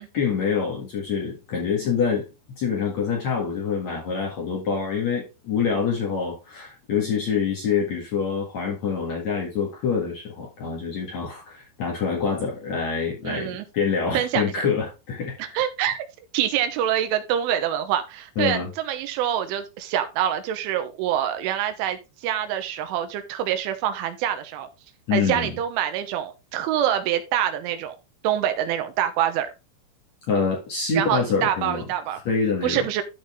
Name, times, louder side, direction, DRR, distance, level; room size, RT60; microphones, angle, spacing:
voice 1, 0.1-2.3 2.6-15.4 18.4-18.7 25.1-25.6 30.3-31.9 32.1-32.8, left 6 dB, 50° left, 2.3 m, -26 dB
voice 2, 13.2-13.7 14.1-14.4 15.4-16.0 16.3-24.7 25.1-28.0 28.2-29.5 31.0-32.2 32.6-33.0, right 10 dB, 85° right, 3.4 m, -25 dB
13.0 x 4.4 x 3.7 m
omnidirectional pair, 5.5 m